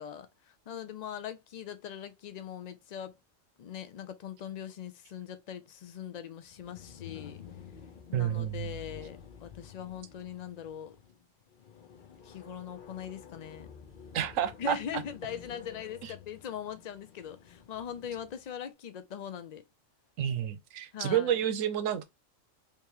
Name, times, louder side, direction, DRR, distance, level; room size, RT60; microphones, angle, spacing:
voice 1, 0.0-3.2 3.6-7.4 8.1-11.0 12.2-13.7 14.6-19.6 20.9-21.5, left 8 dB, 80° left, 0.3 m, -41 dB
sound 1, 6.4-18.4, left 7 dB, 45° left, 0.8 m, -51 dB
voice 2, 8.1-8.7 14.1-14.8 16.0-16.1 20.2-22.0, right 10 dB, 85° right, 1.0 m, -30 dB
3.5 x 2.9 x 2.9 m
omnidirectional pair, 1.3 m